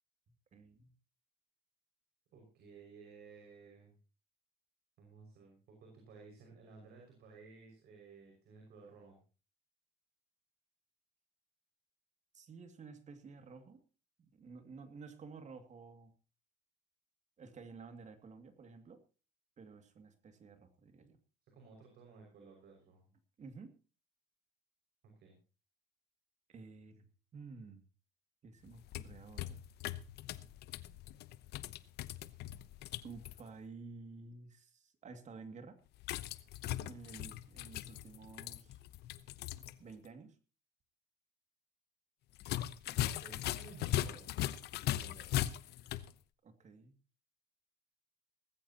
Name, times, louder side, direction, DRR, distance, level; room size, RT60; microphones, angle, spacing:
voice 1, 0.5-0.9 12.3-13.8 14.2-16.1 17.4-19.0 19.6-21.2 23.4-23.7 26.5-27.0 27.3-27.8 28.4-29.6 33.0-35.8 36.9-38.8 39.8-40.4 46.4-46.9, right 4 dB, 45° right, 8 dB, 2.4 m, -52 dB
voice 2, 2.3-3.9 5.0-9.2 21.5-23.1 25.2-25.3 43.1-44.4 44.7-45.4, right 4 dB, 70° right, 1 dB, 6.0 m, -56 dB
sound 1, 28.7-33.4 36.0-39.7 40.0-40.1 42.4-46.1, left 13 dB, 75° left, 0.9 m, -39 dB
19.0 x 15.5 x 2.9 m, 0.35 s
cardioid pair, 110°, 17 cm